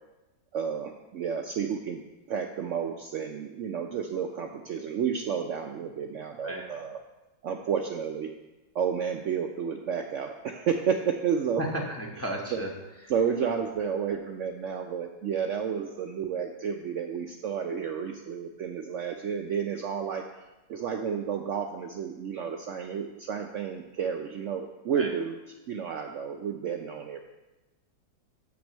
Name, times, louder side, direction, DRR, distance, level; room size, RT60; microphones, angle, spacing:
voice 1, 0.5-2.0 2.3-7.0 7.4-8.3 8.7-11.6 12.5-12.7 13.1-20.2 20.7-25.4 25.7-27.2, right 7 dB, 85° right, 3 dB, 0.6 m, -31 dB
voice 2, 11.6-12.7 24.9-25.1, right 1 dB, 10° left, -1 dB, 0.8 m, -33 dB
6.1 x 6.1 x 7.3 m, 1.0 s
omnidirectional pair, 2.0 m